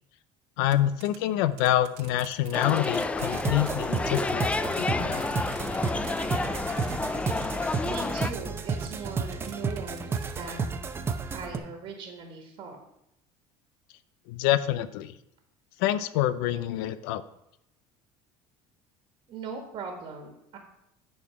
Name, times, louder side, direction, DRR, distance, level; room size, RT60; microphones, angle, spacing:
voice 1, 0.6-5.3 14.3-15.1 15.8-17.2, left 13 dB, 85° left, 14 dB, 0.5 m, -27 dB
sound 1, 0.7-0.8 1.0-1.2 1.5-4.8 5.2-6.2 6.5-8.3 8.8-10.3, right 14 dB, 70° right, 0.9 m, -46 dB
sound 2, 2.5-8.3, left 3 dB, 10° left, 0.3 m, -30 dB
sound 3, 3.2-11.6, right 5 dB, 20° right, 0.7 m, -32 dB
voice 2, 7.8-10.7 11.3-12.8 19.3-20.6, right 4 dB, 45° right, 2 dB, 1.5 m, -39 dB
10.0 x 4.4 x 5.8 m, 0.82 s
cardioid pair, 130°, 11 cm